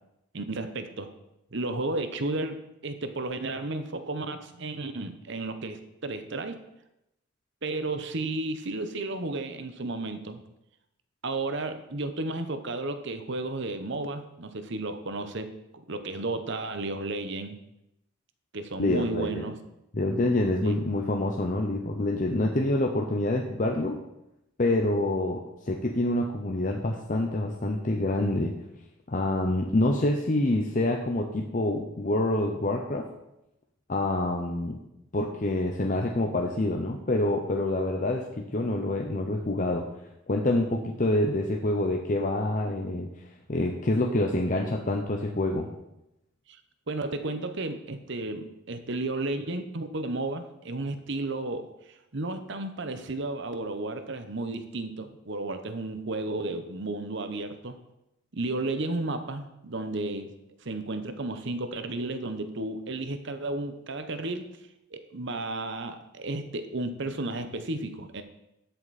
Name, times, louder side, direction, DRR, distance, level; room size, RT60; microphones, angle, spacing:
voice 1, 0.3-1.1 1.5-6.6 7.6-10.4 11.2-15.5 15.7-17.6 18.5-19.6 20.6-20.8 46.5-46.6 46.9-51.7 52.1-57.8 58.3-60.3 60.6-64.5 64.9-68.2, right 2 dB, 60° right, 9 dB, 1.0 m, -33 dB
voice 2, 18.8-19.4 19.9-24.0 24.6-28.5 29.1-33.0 33.9-34.8 35.1-39.9 40.3-43.1 43.5-45.7, left 1 dB, 40° left, 1 dB, 0.8 m, -27 dB
12.5 x 8.0 x 4.2 m, 0.87 s
head